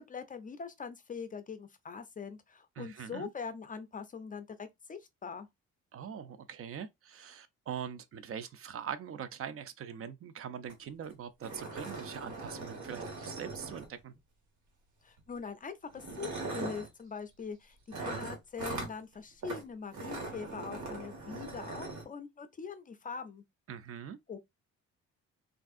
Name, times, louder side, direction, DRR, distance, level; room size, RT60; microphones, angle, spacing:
voice 1, 0.0-5.5 15.0-23.4 24.3-24.4, left 6 dB, 30° left, 0.4 m, -43 dB
voice 2, 2.8-3.3 5.9-14.1 23.7-24.2, right 8 dB, 50° right, 0.4 m, -42 dB
sound 1, 10.7-10.8 11.0-11.1 11.4-14.2 15.2-15.4 15.9-16.9 17.9-18.9 19.4-19.6 19.9-22.0, right 3 dB, 70° right, 1.3 m, -40 dB
3.4 x 2.5 x 2.4 m
cardioid pair, 90°, 30 cm